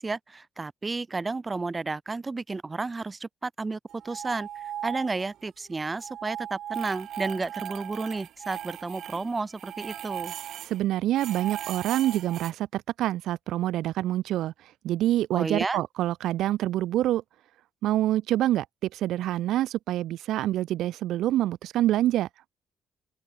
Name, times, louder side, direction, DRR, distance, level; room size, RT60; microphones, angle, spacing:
voice 1, 0.0-10.3 15.3-15.8, right 3 dB, 20° right, 0.8 m, -32 dB
sound 1, 3.9-5.5 5.7-10.8 11.1-12.5, right 11 dB, 70° right, 1.0 m, -38 dB
voice 2, 10.7-14.5 14.8-17.2 17.8-18.7 18.9-22.3, right 13 dB, 90° right, 0.6 m, -26 dB
open air
cardioid pair, 130°, 0 cm